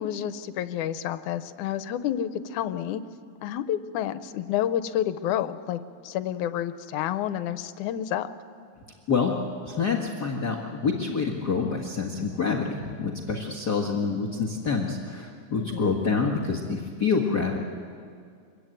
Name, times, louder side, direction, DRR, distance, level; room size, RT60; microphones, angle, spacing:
voice 1, 0.0-3.0 3.4-8.3 15.6-15.9, left 11 dB, 85° left, 12 dB, 2.3 m, -29 dB
voice 2, 9.6-17.6, left 5 dB, 40° left, -2 dB, 1.8 m, -27 dB
24.5 x 22.5 x 9.1 m, 2.3 s
omnidirectional pair, 3.4 m